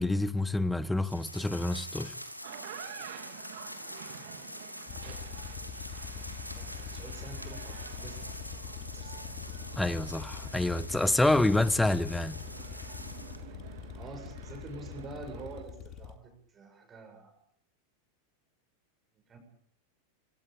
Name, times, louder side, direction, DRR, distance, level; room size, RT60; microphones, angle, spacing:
voice 1, 0.0-2.1 9.8-12.4, left 2 dB, 5° left, 1.1 m, -27 dB
sound 1, 1.0-13.4, equal, 90° left, 2.9 m, -45 dB
sound 2, 2.3-15.6, right 10 dB, 55° right, 3.3 m, -49 dB
Harley Idleing, 4.9-16.2, left 8 dB, 40° left, 2.4 m, -43 dB
voice 2, 5.7-8.4 8.9-9.3 13.5-13.6 13.9-17.4 19.1-19.4, right 3 dB, 25° right, 7.3 m, -47 dB
26.5 x 18.0 x 8.9 m
figure-of-eight pair, 90°, 0 cm